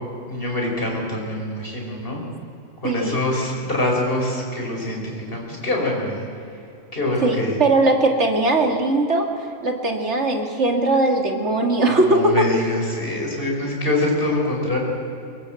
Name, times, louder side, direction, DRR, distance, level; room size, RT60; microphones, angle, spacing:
voice 1, 0.3-2.2 2.8-6.3 6.9-7.6 11.9-14.8, left 1 dB, 45° left, -1 dB, 5.3 m, -24 dB
voice 2, 2.8-3.2 7.2-9.3 9.6-12.5, right 2 dB, 55° right, 3 dB, 2.7 m, -19 dB
23.5 x 21.0 x 7.8 m, 2.8 s
omnidirectional pair, 1.4 m